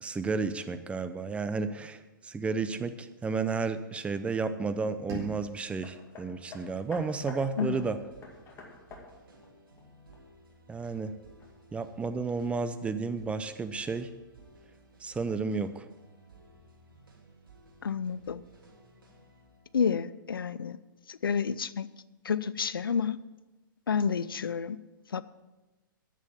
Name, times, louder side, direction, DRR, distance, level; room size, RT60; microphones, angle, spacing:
voice 1, 0.0-8.0 10.7-11.1 11.7-14.1 15.0-15.9, right 4 dB, 10° right, 11 dB, 0.6 m, -32 dB
sound 1, 5.1-8.0, right 1 dB, 25° right, 4.2 m, -46 dB
Hammer, 5.8-10.6 11.4-11.5, left 4 dB, 25° left, 2.3 m, -48 dB
sound 2, 6.5-21.7, right 2 dB, 90° right, 2.9 m, -58 dB
voice 2, 7.6-7.9 17.8-18.4 19.7-20.8 21.1-21.9 22.2-23.2 23.9-24.8 25.1-25.2, left 6 dB, 90° left, 17 dB, 0.5 m, -29 dB
10.5 x 7.5 x 7.2 m, 1.1 s
hypercardioid pair, 120°, 11 cm